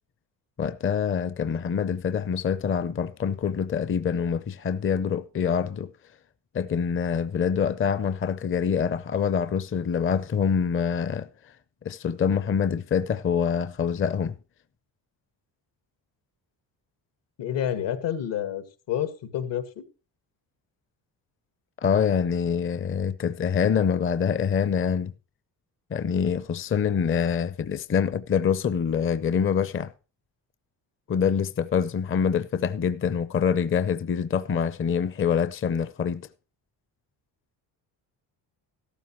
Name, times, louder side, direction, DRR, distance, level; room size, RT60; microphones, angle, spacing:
voice 1, 0.6-5.9 6.5-11.3 11.8-14.4 21.8-25.1 25.9-29.9 31.1-36.3, left 7 dB, 30° left, 0.6 m, -25 dB
voice 2, 17.4-19.8, left 10 dB, 75° left, 2.0 m, -29 dB
14.0 x 12.5 x 3.0 m
cardioid pair, 100°, 43 cm